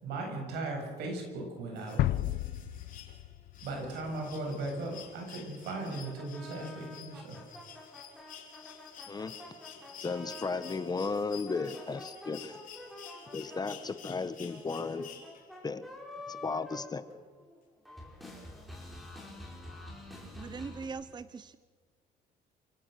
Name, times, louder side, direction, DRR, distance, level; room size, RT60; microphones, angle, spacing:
voice 1, 0.0-2.0 3.6-7.4, right 2 dB, 80° right, 2 dB, 7.4 m, -37 dB
sound 1, 1.8-15.7 17.1-17.2, left 8 dB, 55° left, 4.2 m, -51 dB
sound 2, 2.0-4.8, left 14 dB, 70° left, 0.7 m, -33 dB
sound 3, 5.6-10.8 11.3-17.6 17.8-20.9, left 1 dB, ahead, 5.4 m, -48 dB
voice 2, 10.0-12.6 13.3-15.1 15.6-15.8 16.3-17.0, left 4 dB, 25° left, 13 dB, 1.1 m, -35 dB
voice 3, 20.3-21.6, right 5 dB, 25° right, 14 dB, 0.8 m, -41 dB
28.5 x 17.0 x 6.8 m, 1.5 s
cardioid pair, 110°, 17 cm